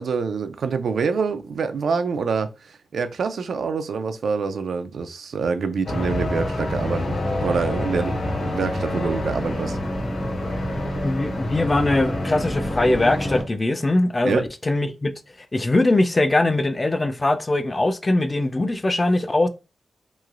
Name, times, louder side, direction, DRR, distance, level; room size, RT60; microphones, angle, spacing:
voice 1, 0.0-2.5 2.9-9.8 14.2-14.4, right 5 dB, 75° right, 0.3 m, -26 dB
sound 1, 5.9-13.4, left 1 dB, 65° left, 1.3 m, -27 dB
voice 2, 11.0-15.1 15.5-19.5, left 2 dB, 25° left, 0.3 m, -21 dB
3.0 x 2.9 x 2.4 m
wide cardioid pair, 130°, 0 cm